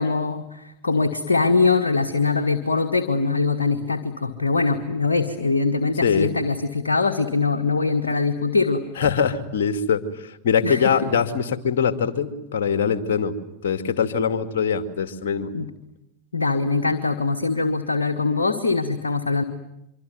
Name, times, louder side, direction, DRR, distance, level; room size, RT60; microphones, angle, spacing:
voice 1, 0.0-8.8 10.6-10.9 15.5-15.7 16.3-19.4, left 4 dB, 75° left, 5 dB, 1.6 m, -22 dB
voice 2, 9.0-13.3 13.6-15.5, left 6 dB, 55° left, 9 dB, 2.4 m, -22 dB
25.0 x 24.5 x 9.3 m, 0.84 s
figure-of-eight pair, 90°, 0 cm